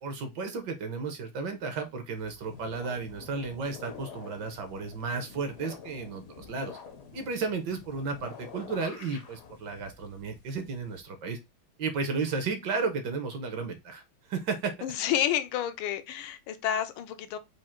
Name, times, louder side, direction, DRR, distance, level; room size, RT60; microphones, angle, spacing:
voice 1, 0.0-6.8 7.1-11.4 11.8-14.0 14.3-14.7, right 4 dB, 65° right, 1.3 m, -33 dB
sound 1, 2.2-11.0, left 6 dB, 60° left, 0.9 m, -48 dB
voice 2, 14.8-17.4, left 10 dB, 85° left, 1.5 m, -30 dB
4.9 x 2.4 x 4.3 m
omnidirectional pair, 2.2 m